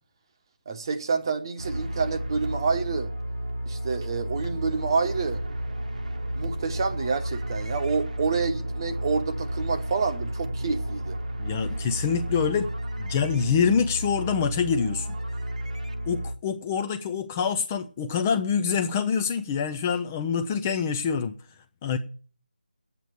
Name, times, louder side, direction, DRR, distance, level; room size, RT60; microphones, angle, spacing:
voice 1, 0.7-3.1 3.7-5.4 6.3-11.2, right 5 dB, 30° right, 1.1 m, -28 dB
sound 1, 1.6-16.4, equal, 55° right, 1.2 m, -32 dB
voice 2, 11.4-12.7 13.0-15.1 16.1-21.4 21.8-22.0, left 6 dB, 15° left, 0.5 m, -26 dB
9.0 x 8.3 x 9.1 m
figure-of-eight pair, 160°, 5 cm